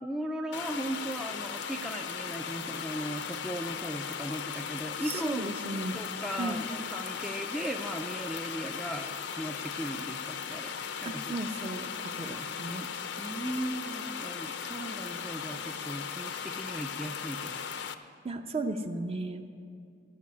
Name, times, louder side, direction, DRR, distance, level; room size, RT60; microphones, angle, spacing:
voice 1, 0.0-5.5 5.9-9.1 9.4-10.7 11.0-11.3 12.2-12.9 13.2-17.6, right 1 dB, ahead, 3 dB, 0.4 m, -37 dB
sound 1, 0.5-17.9, left 7 dB, 70° left, 0.6 m, -37 dB
voice 2, 5.0-6.0 6.3-6.6 11.0-11.9 12.2-12.8 18.2-19.5, right 2 dB, 35° right, 6 dB, 0.7 m, -35 dB
15.0 x 5.7 x 9.3 m, 2.3 s
head